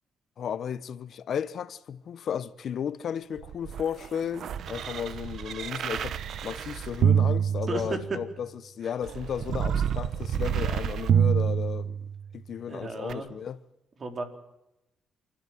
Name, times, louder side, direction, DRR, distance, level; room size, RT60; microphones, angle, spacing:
voice 1, 0.4-6.1 6.4-12.0 12.3-13.6, left 8 dB, 60° left, 0.9 m, -34 dB
sound 1, 3.4-8.3 9.0-12.3 13.1-13.2, right 8 dB, 65° right, 1.0 m, -27 dB
voice 2, 7.7-8.0 12.7-13.3 14.0-14.2, right 3 dB, 40° right, 4.1 m, -33 dB
28.5 x 13.0 x 9.4 m
cardioid pair, 90°, 0 cm